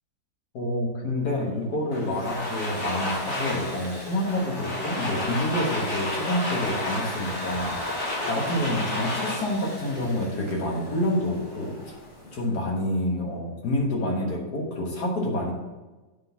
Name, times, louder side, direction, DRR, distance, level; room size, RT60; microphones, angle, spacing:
voice 1, 0.5-7.7 8.3-11.8 12.3-15.5, left 1 dB, 60° left, -1 dB, 2.0 m, -28 dB
sound 1, 1.2-9.4 9.8-10.5, right 2 dB, 85° right, 1.6 m, -42 dB
Domestic sounds home sounds, 1.9-10.8, left 1 dB, 80° left, 3.9 m, -31 dB
sound 2, 2.1-12.5, left 1 dB, 40° left, 1.9 m, -48 dB
8.8 x 3.9 x 5.8 m, 1.2 s
omnidirectional pair, 2.1 m